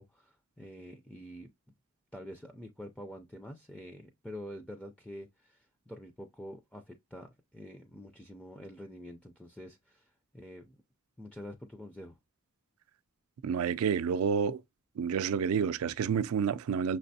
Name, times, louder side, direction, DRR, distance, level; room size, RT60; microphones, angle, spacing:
voice 1, 0.0-1.5 2.1-10.8 11.2-12.2, equal, 5° left, 0.4 m, -47 dB
voice 2, 13.4-14.6 15.0-17.0, right 6 dB, 80° right, 0.4 m, -29 dB
5.8 x 3.2 x 2.7 m
head